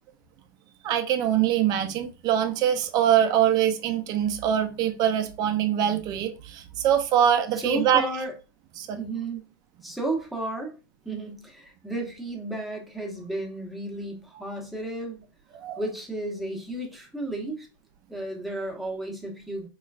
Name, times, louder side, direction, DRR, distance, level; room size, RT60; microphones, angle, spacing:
voice 1, 0.8-8.0 8.8-9.0 15.5-15.8, right 10 dB, 35° right, 7 dB, 0.5 m, -23 dB
voice 2, 7.6-8.3 9.0-9.4 9.8-10.7 11.0-15.2 15.8-17.7 18.1-19.7, right 2 dB, ahead, 0 dB, 0.8 m, -33 dB
4.3 x 3.1 x 2.4 m, 0.32 s
supercardioid pair, 155°, 11 cm